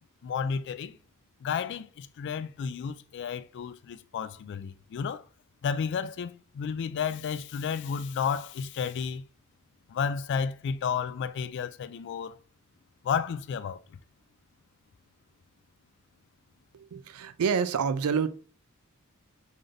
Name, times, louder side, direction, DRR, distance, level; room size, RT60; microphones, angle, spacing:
voice 1, 0.2-1.0 1.4-5.2 5.6-9.2 9.9-12.4 13.0-13.8, left 6 dB, 55° left, 0.3 m, -32 dB
voice 2, 16.7-18.3, right 6 dB, 85° right, 0.4 m, -28 dB
3.9 x 3.2 x 2.5 m
head